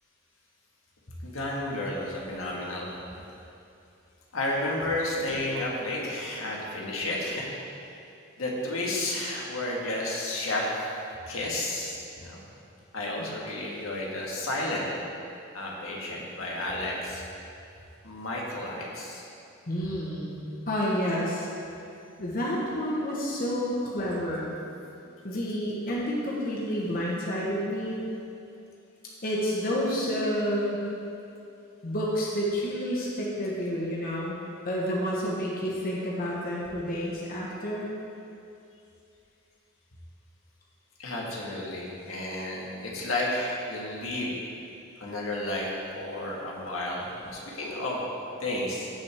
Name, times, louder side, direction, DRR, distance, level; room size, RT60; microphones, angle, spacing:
voice 1, 1.2-2.9 4.3-7.5 8.4-10.7 11.3-12.4 12.9-14.9 15.5-17.2 18.0-19.2 41.0-44.3 45.0-45.7 45.9-48.0 48.4-48.9, left 1 dB, 75° left, -3 dB, 1.7 m, -32 dB
voice 2, 19.7-20.3 20.7-21.5 22.2-24.5 25.2-28.0 29.2-30.9 31.8-34.4 34.6-37.9, equal, 45° left, -5 dB, 1.3 m, -29 dB
16.0 x 5.9 x 3.5 m, 2.6 s
head